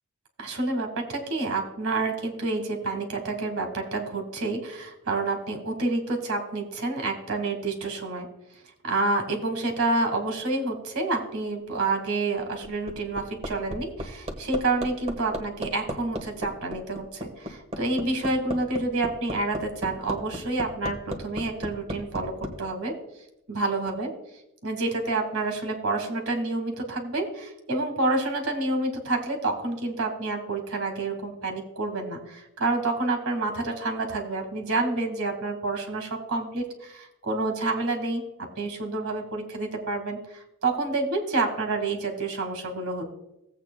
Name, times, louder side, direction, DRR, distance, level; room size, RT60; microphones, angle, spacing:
voice 1, 0.4-8.3 8.8-22.9 23.5-24.1 24.6-43.1, right 2 dB, 75° right, 3 dB, 1.9 m, -28 dB
Hammer, 12.6-22.5 23.9-24.0, equal, 30° right, 1.3 m, -34 dB
16.5 x 8.1 x 2.2 m, 0.89 s
head